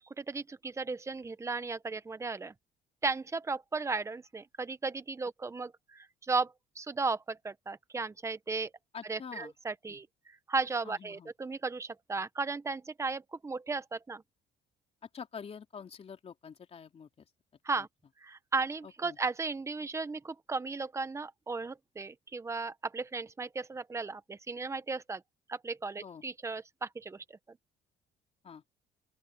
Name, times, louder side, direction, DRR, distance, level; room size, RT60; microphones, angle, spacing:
voice 1, 0.0-2.5 3.0-8.7 9.1-10.1 10.5-14.2 17.6-17.9 18.2-25.2 25.5-27.2, right 4 dB, 15° right, 1.1 m, -35 dB
voice 2, 8.9-9.5 9.9-10.0 10.8-11.3 15.1-17.3 17.8-17.9 18.8-19.2 26.0-26.2 28.4-28.6, left 6 dB, 35° left, 3.5 m, -46 dB
open air
cardioid pair, 110°, 17 cm